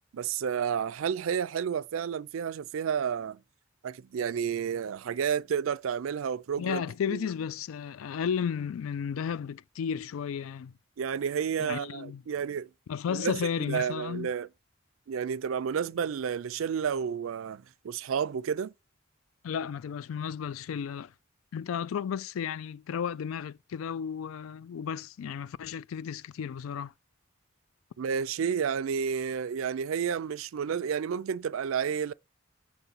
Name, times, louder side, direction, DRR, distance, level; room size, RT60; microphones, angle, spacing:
voice 1, 0.1-3.4 3.8-6.8 7.1-7.2 11.0-12.7 13.1-13.4 13.7-14.5 15.1-18.7 28.0-32.1, right 7 dB, 80° right, 0.4 m, -31 dB
voice 2, 6.6-10.7 11.6-12.2 12.9-14.3 19.4-21.1 21.5-26.9, left 7 dB, 85° left, 0.3 m, -33 dB
7.0 x 3.1 x 5.5 m
head